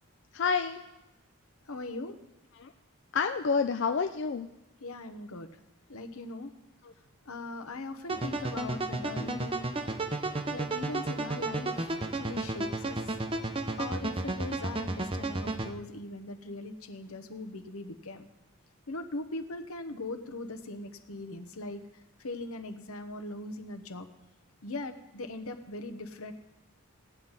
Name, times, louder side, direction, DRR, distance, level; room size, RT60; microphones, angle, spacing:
voice 1, 0.3-0.8 2.5-2.7 3.1-4.5 6.8-6.9 12.9-13.0, left 5 dB, 55° left, 7 dB, 0.4 m, -29 dB
voice 2, 1.7-2.2 4.8-5.5 5.9-6.5 7.3-9.7 10.5-13.0 13.8-18.3 18.9-21.8 22.2-24.1 24.6-26.3, left 2 dB, 80° left, 7 dB, 1.0 m, -40 dB
sound 1, 8.1-15.7, right 2 dB, 25° right, 0.6 m, -33 dB
16.5 x 8.8 x 4.0 m, 0.97 s
head